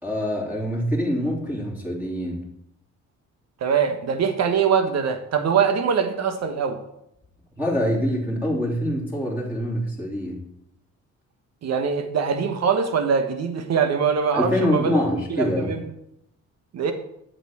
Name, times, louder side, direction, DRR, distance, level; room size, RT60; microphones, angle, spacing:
voice 1, 0.0-2.4 7.6-10.5 14.3-15.7, left 1 dB, 5° right, -6 dB, 2.9 m, -25 dB
voice 2, 3.6-6.8 11.6-15.0 15.3-15.8 16.7-16.9, right 6 dB, 60° right, 7 dB, 1.3 m, -23 dB
7.9 x 6.9 x 4.4 m, 0.78 s
cardioid pair, 90°, 30 cm